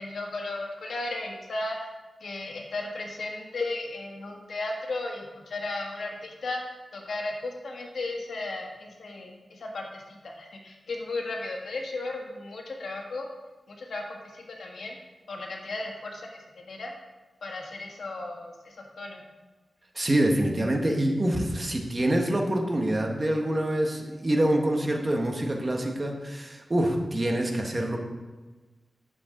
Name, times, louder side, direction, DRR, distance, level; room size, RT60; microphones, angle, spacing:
voice 1, 0.0-1.8 2.2-6.6 6.9-13.3 13.7-14.9 15.3-16.2 16.5-16.9 17.4-19.2, left 2 dB, 80° left, 0 dB, 1.6 m, -35 dB
voice 2, 19.9-28.0, right 1 dB, 30° right, 2 dB, 1.4 m, -26 dB
10.5 x 7.1 x 3.9 m, 1.2 s
wide cardioid pair, 90°, 0 cm